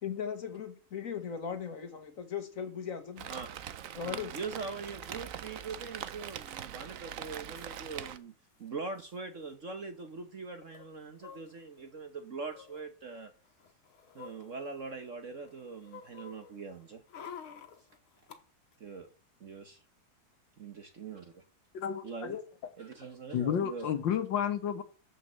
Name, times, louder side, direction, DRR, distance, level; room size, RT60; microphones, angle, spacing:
voice 1, 0.0-3.3 3.9-4.3, left 7 dB, 45° left, 1.4 m, -38 dB
Rain, 3.2-8.2, right 10 dB, 70° right, 0.7 m, -42 dB
voice 2, 4.0-8.3 8.6-13.3 14.1-17.0 18.8-19.1 19.4-19.8 20.6-21.4 22.0-22.4 22.8-23.9, right 4 dB, 45° right, 1.2 m, -42 dB
sound 1, 4.6-4.7 4.8-5.1 6.1-6.6 6.9-7.0 7.2-7.8 8.6-8.7 9.0-9.2 10.7-11.9 12.5-12.8 13.5-15.1 15.5-18.4 18.7-18.8, left 7 dB, 90° left, 2.0 m, -51 dB
voice 3, 21.7-22.4 23.3-24.8, left 8 dB, 65° left, 1.7 m, -31 dB
9.1 x 7.6 x 7.5 m
omnidirectional pair, 2.3 m